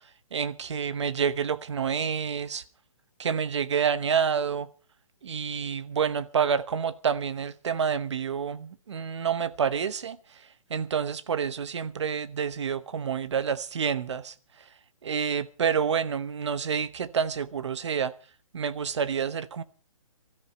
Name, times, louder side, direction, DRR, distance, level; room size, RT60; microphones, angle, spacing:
voice 1, 0.3-2.6 3.2-4.7 5.2-10.2 10.7-14.3 15.0-18.1 18.5-19.6, right 7 dB, 55° right, 1.0 m, -28 dB
19.5 x 13.5 x 4.4 m
hypercardioid pair, 170°, 18 cm